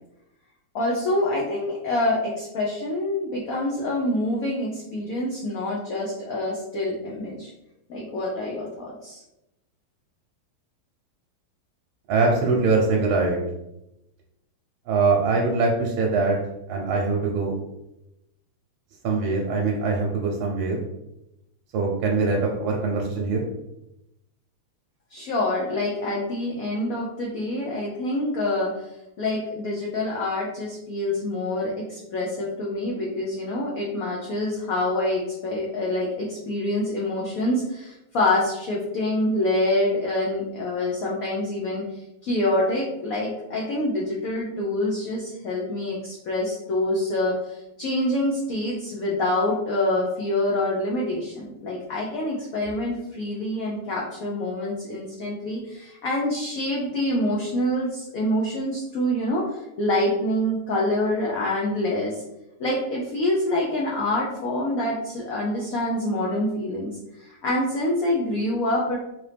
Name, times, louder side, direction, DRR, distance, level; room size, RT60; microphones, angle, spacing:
voice 1, 0.7-7.5 7.9-9.2 25.1-28.7 29.2-62.2 62.6-69.0, left 1 dB, 75° left, -3 dB, 0.8 m, -26 dB
voice 2, 12.1-13.4 14.9-16.4 16.7-17.6 19.0-20.8 21.7-23.5, right 3 dB, 75° right, -1 dB, 1.4 m, -23 dB
3.9 x 2.8 x 3.3 m, 0.89 s
omnidirectional pair, 2.3 m